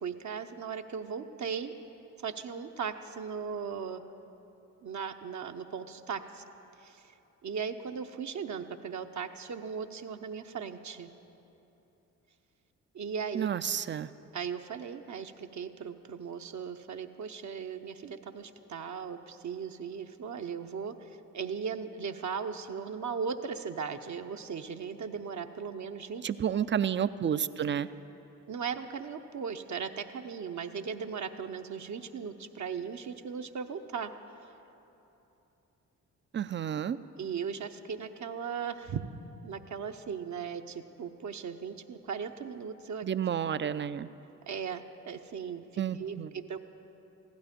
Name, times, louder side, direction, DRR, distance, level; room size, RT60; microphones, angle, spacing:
voice 1, 0.0-1.7 2.2-4.0 4.8-6.4 6.8-7.2 7.4-11.1 12.9-13.5 14.3-26.3 28.5-34.1 37.2-39.0 39.4-43.1 43.6-43.7 44.5-46.6, right 6 dB, 50° right, 6 dB, 0.8 m, -38 dB
voice 2, 13.3-14.1 26.2-27.9 36.3-37.0 43.0-44.1 45.8-46.3, right 8 dB, 30° right, 15 dB, 0.5 m, -30 dB
15.5 x 11.5 x 5.2 m, 3.0 s
hypercardioid pair, 45°, 36 cm